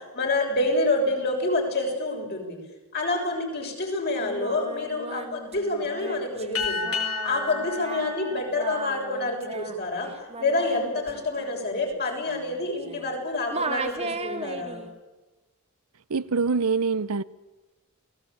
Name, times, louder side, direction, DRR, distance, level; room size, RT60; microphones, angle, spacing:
voice 1, 0.1-2.6 2.9-6.8 7.2-10.1 10.4-14.8, left 2 dB, 45° left, 6.9 m, -27 dB
Singing, 4.2-13.2 13.5-14.9, right 3 dB, 30° right, 2.0 m, -37 dB
sound 1, 6.5-9.5, left 5 dB, 70° left, 3.7 m, -32 dB
voice 2, 16.1-17.2, right 4 dB, 75° right, 0.8 m, -24 dB
28.5 x 18.5 x 8.8 m
head